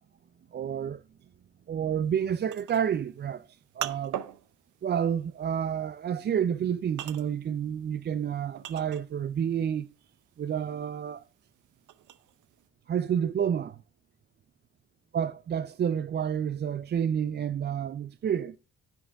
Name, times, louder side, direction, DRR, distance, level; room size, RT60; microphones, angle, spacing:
voice 1, 0.5-1.0 1.7-4.2 4.8-9.9 10.4-11.2 12.9-13.8 15.1-18.6, right 8 dB, 35° right, 0.4 m, -29 dB
sound 1, 2.1-9.4 9.7-12.7, right 12 dB, 80° right, 0.8 m, -41 dB
10.5 x 8.9 x 3.4 m
cardioid pair, 90°, 30 cm